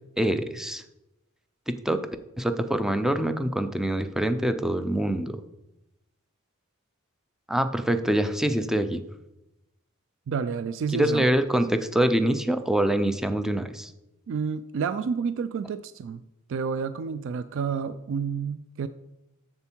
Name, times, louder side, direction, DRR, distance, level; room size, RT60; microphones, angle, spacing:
voice 1, 0.2-0.8 1.7-2.0 2.4-5.4 7.5-9.0 10.9-13.9, right 1 dB, ahead, 9 dB, 0.5 m, -25 dB
voice 2, 10.3-11.3 14.3-16.2 16.5-18.9, right 6 dB, 65° right, 13 dB, 0.3 m, -29 dB
7.0 x 6.8 x 4.5 m, 0.91 s
head